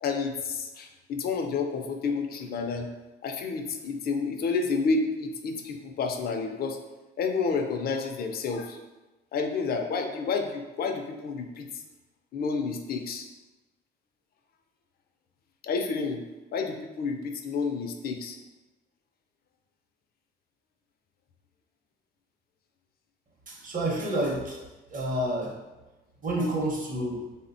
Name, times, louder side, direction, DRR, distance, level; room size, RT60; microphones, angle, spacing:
voice 1, 0.0-2.9 3.2-6.8 7.2-8.8 9.3-11.7 12.3-13.3 15.6-16.2 16.5-18.4, left 4 dB, 50° left, 5 dB, 0.4 m, -30 dB
voice 2, 23.5-24.6 24.9-25.5 26.2-27.3, right 1 dB, 40° right, -1 dB, 0.7 m, -29 dB
3.4 x 2.1 x 2.5 m, 1.1 s
cardioid pair, 90°, 20 cm